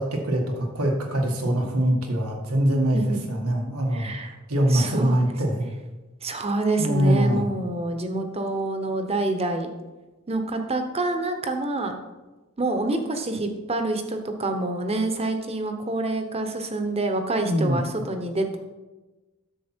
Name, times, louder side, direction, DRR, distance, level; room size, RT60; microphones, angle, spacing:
voice 1, 0.0-4.1 4.5-5.7 6.8-7.5 17.4-17.8, right 1 dB, 85° right, 1 dB, 1.8 m, -23 dB
voice 2, 3.9-4.3 4.7-5.2 6.2-9.7 10.3-11.9 12.6-18.6, right 2 dB, 30° right, 6 dB, 1.0 m, -27 dB
10.0 x 7.2 x 4.5 m, 1.1 s
head